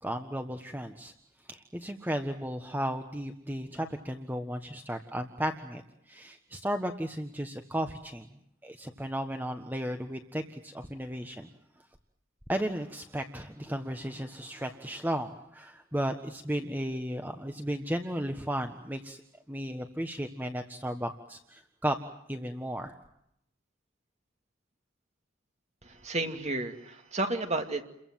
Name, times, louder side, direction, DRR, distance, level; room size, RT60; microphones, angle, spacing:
voice 1, 0.0-1.1 1.5-8.3 8.6-11.5 12.5-19.2 19.5-22.0 22.3-23.0, equal, 10° right, 6 dB, 1.4 m, -34 dB
voice 2, 25.8-27.8, right 2 dB, 35° right, 6 dB, 2.4 m, -32 dB
30.0 x 23.0 x 7.6 m, 0.78 s
head